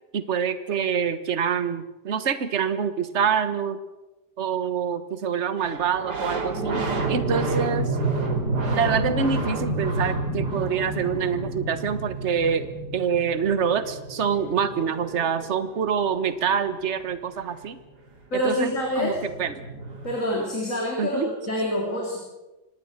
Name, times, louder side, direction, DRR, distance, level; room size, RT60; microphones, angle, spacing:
voice 1, 0.1-3.8 4.4-8.0 8.7-17.8 18.4-19.6 21.0-21.3, right 7 dB, 45° right, 12 dB, 1.5 m, -26 dB
sound 1, 5.6-16.0 18.1-18.2 18.3-20.1, right 2 dB, 70° right, 3.4 m, -29 dB
voice 2, 18.3-19.2 20.0-22.2, equal, 50° left, -1 dB, 3.9 m, -26 dB
25.0 x 19.5 x 6.5 m, 1.1 s
omnidirectional pair, 1.8 m